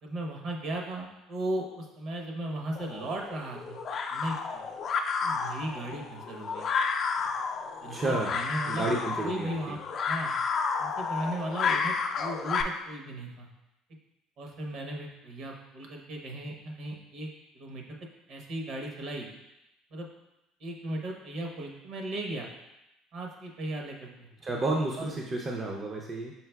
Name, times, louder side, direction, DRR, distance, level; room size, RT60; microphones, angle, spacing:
voice 1, 0.0-3.8 4.1-4.7 5.2-6.6 7.8-8.8 9.2-9.8 10.1-10.3 10.8-13.5 14.4-17.3 17.5-18.0 18.3-19.3 19.9-20.1 20.6-22.5 23.1-24.3 25.0-25.1, right 1 dB, 55° right, 1 dB, 0.9 m, -36 dB
sound 1, 2.7-12.6, left 5 dB, 40° left, 0.4 m, -31 dB
voice 2, 7.9-8.3 8.7-9.8 24.4-26.3, right 2 dB, 25° right, -1 dB, 0.5 m, -31 dB
5.6 x 4.1 x 2.2 m, 0.92 s
cardioid pair, 120°, 0 cm